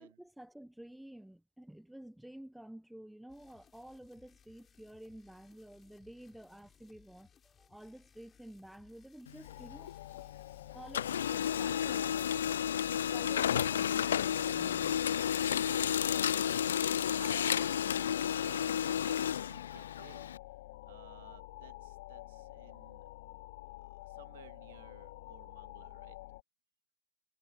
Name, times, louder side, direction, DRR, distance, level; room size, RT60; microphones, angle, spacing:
voice 1, 0.0-10.0 10.7-12.1 13.1-15.1, right 1 dB, ahead, 1.0 m, -51 dB
sound 1, 3.3-14.3, left 7 dB, 25° left, 8.0 m, -65 dB
Printer, 9.3-10.5 10.8-20.4, left 9 dB, 75° left, 0.3 m, -32 dB
sound 2, 9.4-26.4, left 19 dB, 60° left, 3.0 m, -49 dB
voice 2, 16.1-16.7 17.1-20.3 20.8-23.1 23.8-26.2, right 13 dB, 70° right, 2.2 m, -56 dB
hypercardioid pair, 100°, 0 cm